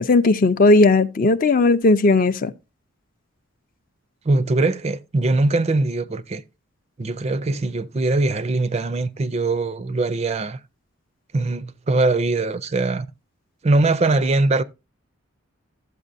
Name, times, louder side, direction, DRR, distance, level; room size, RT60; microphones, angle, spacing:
voice 1, 0.0-2.5, left 3 dB, 40° left, 0.5 m, -16 dB
voice 2, 4.3-6.4 7.0-10.6 11.3-13.1 13.6-14.6, right 2 dB, 30° right, 0.4 m, -21 dB
12.5 x 8.1 x 2.6 m
head